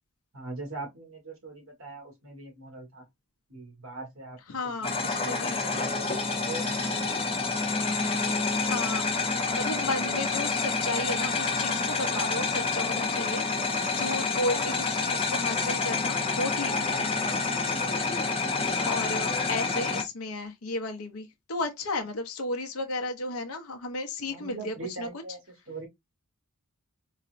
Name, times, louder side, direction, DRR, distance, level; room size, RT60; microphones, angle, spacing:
voice 1, 0.3-3.0 3.5-7.5 17.8-18.2 24.3-25.4 25.7-25.9, right 2 dB, 65° right, 1.5 m, -41 dB
voice 2, 4.5-5.6 8.7-9.0 9.5-17.1 18.6-25.1, left 2 dB, 70° left, 0.7 m, -34 dB
sound 1, 4.8-20.0, left 4 dB, 25° left, 0.6 m, -28 dB
4.0 x 2.1 x 2.4 m
head